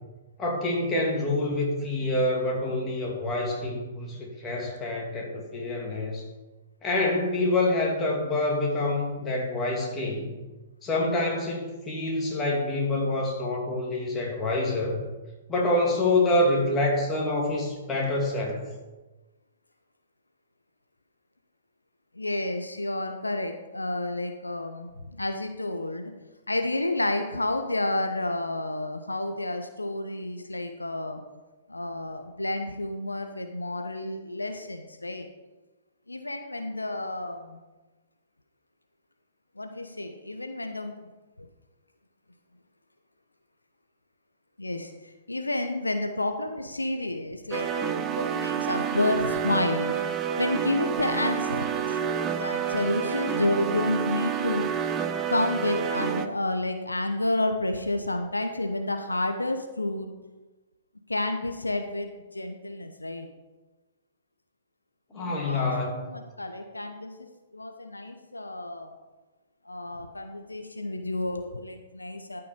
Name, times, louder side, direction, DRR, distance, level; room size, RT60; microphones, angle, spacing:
voice 1, 0.4-6.2 6.8-10.4 10.8-15.0 15.5-18.7 65.1-66.1, left 2 dB, 20° left, -2 dB, 2.8 m, -26 dB
voice 2, 22.1-26.1 26.5-31.2 31.7-35.3 36.1-37.6 39.6-41.1 41.4-41.5 44.6-54.7 55.3-60.1 61.1-63.3 65.1-67.3 67.5-68.9 69.6-72.4, left 2 dB, 90° left, 6 dB, 0.9 m, -30 dB
sound 1, 47.5-56.3, right 8 dB, 25° right, 0.7 m, -29 dB
13.0 x 5.8 x 5.2 m, 1.2 s
figure-of-eight pair, 120°, 0 cm